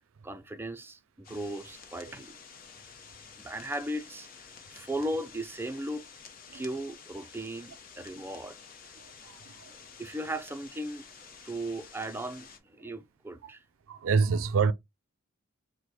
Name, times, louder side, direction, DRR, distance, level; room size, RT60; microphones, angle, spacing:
voice 1, 0.2-2.4 3.4-6.1 6.5-8.6 9.7-13.6, right 1 dB, 10° right, 0.4 m, -37 dB
sound 1, 1.2-12.6, left 6 dB, 45° left, 0.9 m, -51 dB
voice 2, 9.0-9.7 13.9-14.7, right 5 dB, 75° right, 0.4 m, -28 dB
4.8 x 2.2 x 4.1 m
head